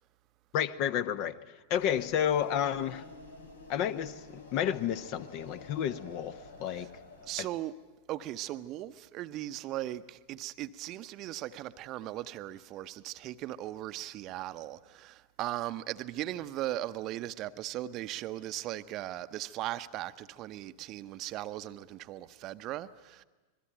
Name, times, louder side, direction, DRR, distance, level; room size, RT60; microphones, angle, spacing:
voice 1, 0.5-1.3 1.7-3.0 3.7-6.9, left 9 dB, 45° left, 1.1 m, -31 dB
sound 1, 1.7-7.5, left 2 dB, 75° left, 3.2 m, -50 dB
voice 2, 7.3-7.7 8.1-23.2, right 14 dB, 35° right, 0.8 m, -38 dB
26.0 x 21.0 x 9.2 m
figure-of-eight pair, 90°, 0 cm